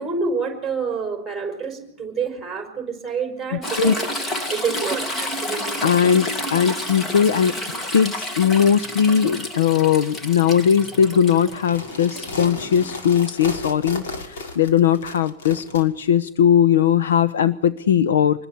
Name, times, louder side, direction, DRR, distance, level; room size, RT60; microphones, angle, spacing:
voice 1, 0.0-3.9 4.5-6.0 9.2-9.4 12.1-12.2, right 5 dB, 5° right, 3 dB, 5.4 m, -28 dB
voice 2, 3.5-3.9 5.8-7.5 7.9-18.5, left 8 dB, 85° left, 18 dB, 1.0 m, -19 dB
Toilet flush / Trickle dribble, 3.6-13.3 15.1-15.2, left 1 dB, 15° left, 1.6 m, -30 dB
sound 1, 11.6-15.8, left 3 dB, 65° left, 5.9 m, -34 dB
25.5 x 21.0 x 7.1 m, 0.78 s
supercardioid pair, 155°, 0 cm